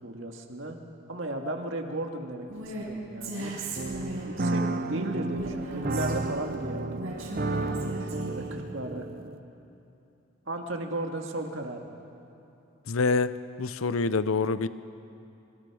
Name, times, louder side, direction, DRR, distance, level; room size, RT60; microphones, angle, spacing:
voice 1, 0.0-0.8 1.1-3.7 4.3-9.1 10.5-11.9, right 1 dB, 65° right, 3 dB, 1.9 m, -35 dB
Female speech woman speaking, 2.5-2.9 3.2-4.5 5.4-6.5 7.0-8.6, right 2 dB, 80° right, 6.1 m, -37 dB
sound 1, 3.8-9.4, right 2 dB, 45° right, 0.7 m, -32 dB
voice 2, 12.9-14.7, left 4 dB, 80° left, 14 dB, 0.6 m, -26 dB
26.0 x 24.5 x 4.9 m, 2.8 s
head